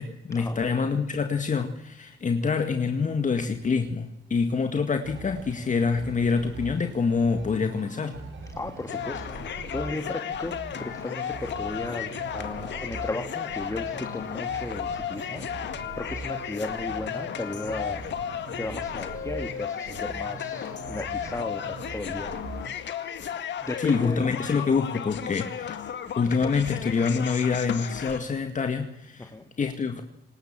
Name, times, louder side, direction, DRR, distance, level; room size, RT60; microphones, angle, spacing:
voice 1, 0.0-8.3 23.8-25.8 26.2-29.3 29.6-30.0, left 5 dB, 40° left, 6 dB, 2.0 m, -26 dB
sound 1, 5.0-22.7, right 4 dB, 70° right, 5.5 m, -42 dB
voice 2, 8.5-15.5 15.9-22.8 23.6-24.2 25.2-25.4 25.9-26.0 29.2-29.4, left 2 dB, 15° left, 5 dB, 2.1 m, -36 dB
sound 2, 8.9-28.2, left 9 dB, 65° left, 2.0 m, -34 dB
26.5 x 20.5 x 7.6 m, 0.83 s
cardioid pair, 90°, 20 cm